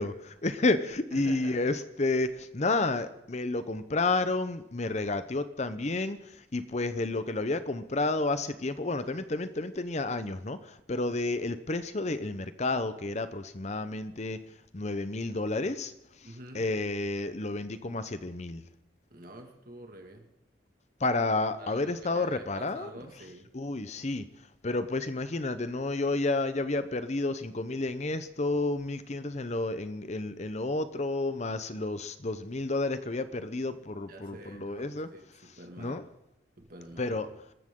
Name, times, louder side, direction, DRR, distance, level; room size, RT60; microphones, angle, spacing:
voice 1, 0.0-14.4 14.7-18.6 21.0-22.9 23.5-35.1 35.8-36.0 37.0-37.3, left 2 dB, 35° left, 12 dB, 0.8 m, -31 dB
voice 2, 1.1-1.7 16.3-16.6 19.1-20.3 21.6-23.5 34.1-36.0 36.6-37.2, right 1 dB, 50° right, 3 dB, 2.1 m, -47 dB
25.5 x 14.0 x 3.8 m, 0.86 s
head